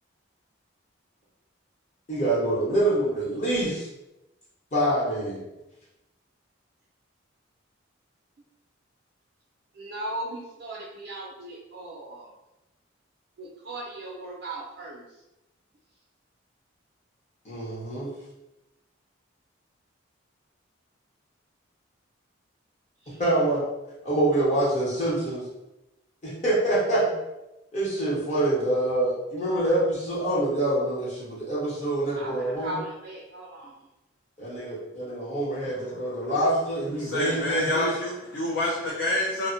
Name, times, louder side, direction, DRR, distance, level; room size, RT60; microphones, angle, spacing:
voice 1, 2.1-3.9 4.7-5.4 17.4-18.1 23.2-23.6 24.0-25.5 26.2-27.1 27.7-32.8 34.4-37.9, right 1 dB, 35° left, -7 dB, 0.9 m, -25 dB
voice 2, 9.7-12.3 13.4-15.2 23.0-23.2 32.1-33.8, right 1 dB, 55° right, -4 dB, 0.4 m, -38 dB
voice 3, 35.9-36.3 37.0-39.5, left 1 dB, 60° left, -4 dB, 0.4 m, -28 dB
2.1 x 2.1 x 3.8 m, 0.97 s
head